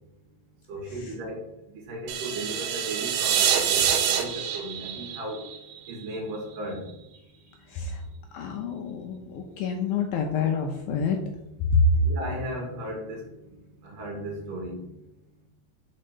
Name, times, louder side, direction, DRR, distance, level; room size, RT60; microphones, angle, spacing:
voice 1, 0.7-5.4 5.9-6.8 11.8-13.6 13.8-14.8, right 1 dB, 60° right, -1 dB, 3.1 m, -36 dB
sound 1, 2.1-6.2, right 9 dB, 80° right, 2.5 m, -26 dB
voice 2, 8.3-11.2 11.7-11.8, left 6 dB, 80° left, 3 dB, 2.2 m, -27 dB
6.7 x 4.4 x 6.7 m, 0.88 s
omnidirectional pair, 4.9 m